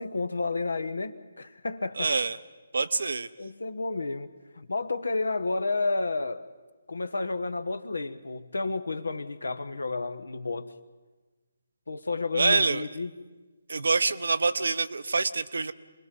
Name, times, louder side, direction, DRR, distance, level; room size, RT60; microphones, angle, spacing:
voice 1, 0.0-2.1 3.4-6.5 6.9-10.7 11.9-13.1, left 3 dB, 75° left, 12 dB, 1.2 m, -31 dB
voice 2, 1.9-2.4 2.7-3.3 12.3-12.8 13.7-15.7, right 4 dB, 65° right, 12 dB, 0.9 m, -26 dB
28.0 x 21.0 x 5.4 m, 1.3 s
figure-of-eight pair, 145°, 0 cm